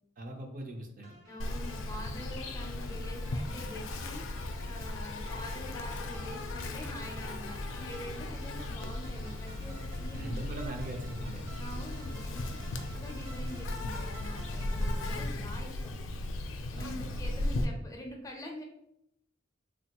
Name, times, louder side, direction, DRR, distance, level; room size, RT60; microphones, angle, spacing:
voice 1, 0.2-1.2 10.1-11.4 12.9-13.0 16.7-17.2, right 1 dB, 45° right, 3 dB, 0.5 m, -41 dB
sound 1, 1.0-15.3, right 1 dB, 60° right, 1.0 m, -52 dB
voice 2, 1.3-4.2 4.7-10.3 11.6-12.4 12.7-15.9 16.7-18.6, left 1 dB, 20° left, 1 dB, 0.5 m, -45 dB
Insect, 1.4-17.6, left 2 dB, 80° left, 0.4 m, -36 dB
3.4 x 2.3 x 2.9 m, 0.80 s
head